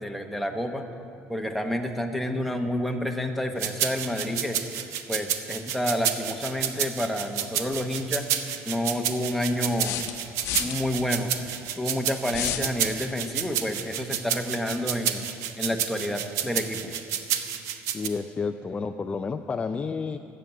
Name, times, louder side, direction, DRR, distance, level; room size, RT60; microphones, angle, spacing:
voice 1, 0.0-0.8 1.3-4.6 5.1-8.3 8.6-10.0 10.6-11.3 11.7-15.2 15.6-16.9, left 1 dB, ahead, 3 dB, 1.0 m, -29 dB
sound 1, 3.6-18.1, right 9 dB, 75° right, 0.8 m, -30 dB
sound 2, 9.8-10.8 12.3-12.7, left 11 dB, 80° left, 0.9 m, -30 dB
voice 2, 17.9-20.2, left 5 dB, 20° left, 7 dB, 0.4 m, -30 dB
13.0 x 7.6 x 7.9 m, 2.5 s
cardioid pair, 120°, 5 cm